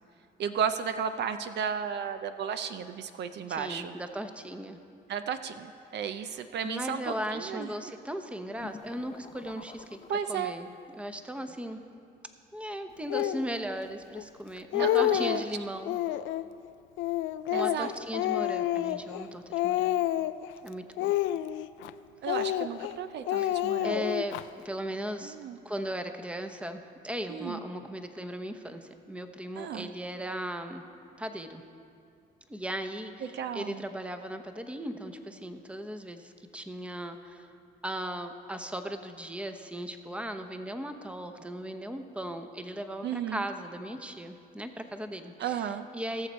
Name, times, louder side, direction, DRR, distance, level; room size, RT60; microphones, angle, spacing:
voice 1, 0.4-3.9 5.1-7.9 10.1-10.5 14.8-15.4 17.5-17.9 22.2-24.2 25.2-25.6 27.3-27.6 29.6-29.9 33.2-33.9 43.0-43.4 45.4-45.9, right 8 dB, 60° right, 10 dB, 0.5 m, -34 dB
voice 2, 3.5-4.8 6.6-10.0 10.3-10.7 11.0-11.8 12.5-16.0 17.5-20.0 20.6-21.1 23.4-25.4 25.6-30.8 31.2-31.6 32.5-37.5 37.8-46.3, equal, 5° right, 7 dB, 0.8 m, -37 dB
sound 1, 8.6-11.0, left 5 dB, 30° left, 0.6 m, -48 dB
Speech, 13.1-13.4 14.2-14.3 14.6-15.5 15.9-16.5 17.0-19.3 19.5-20.5 21.0-21.9 22.3-22.9 23.3-24.4, left 14 dB, 80° left, 0.4 m, -29 dB
18.5 x 6.8 x 4.3 m, 2.4 s
supercardioid pair, 80°, 20 cm